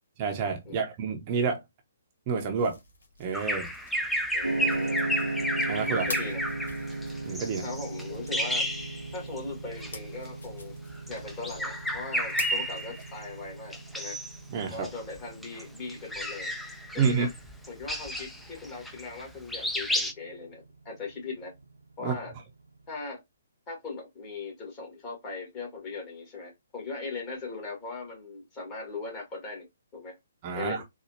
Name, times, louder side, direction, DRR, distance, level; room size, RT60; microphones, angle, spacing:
voice 1, 0.2-1.6 2.3-2.8 3.2-3.7 5.7-6.1 7.2-7.6 14.5-14.9 17.0-17.3 22.0-22.2 30.4-30.8, right 5 dB, 30° right, 0.7 m, -28 dB
sound 1, 2.4-13.5, left 2 dB, 70° left, 1.6 m, -47 dB
Bird vocalization bird call bird song, 3.3-9.4 9.7-9.9 11.0-13.2 13.7-14.4 14.7-19.2 19.5-20.1, equal, ahead, 0.4 m, -32 dB
voice 2, 4.3-5.1 6.1-6.4 7.6-8.7 9.1-10.7 11.1-14.2 14.7-16.5 16.9-17.3 17.7-21.5 22.0-22.3 22.9-23.2 23.7-29.7 29.9-30.2 30.5-30.8, left 4 dB, 25° left, 1.7 m, -39 dB
sound 2, 4.4-22.7, right 2 dB, 90° right, 0.8 m, -38 dB
4.1 x 2.4 x 2.7 m
figure-of-eight pair, 130°, 0 cm